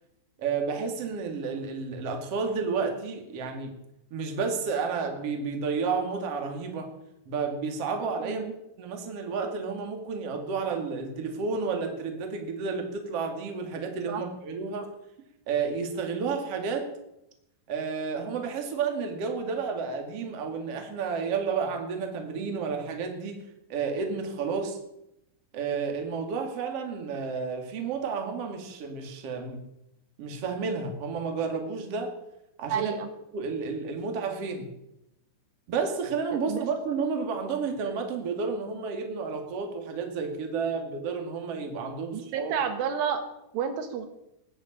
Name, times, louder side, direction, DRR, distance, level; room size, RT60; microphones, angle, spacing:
voice 1, 0.4-3.7 4.1-6.9 7.3-8.5 8.8-14.9 15.5-16.9 17.7-23.4 23.7-24.8 25.5-29.6 30.2-32.1 32.6-32.9 33.3-34.7 35.7-42.6, right 5 dB, 40° right, 3 dB, 2.6 m, -31 dB
voice 2, 8.2-8.5 14.1-14.2 32.7-33.1 36.3-36.7 42.1-43.2 43.5-44.1, right 8 dB, 85° right, 7 dB, 4.1 m, -30 dB
21.5 x 7.3 x 8.7 m, 0.84 s
omnidirectional pair, 5.4 m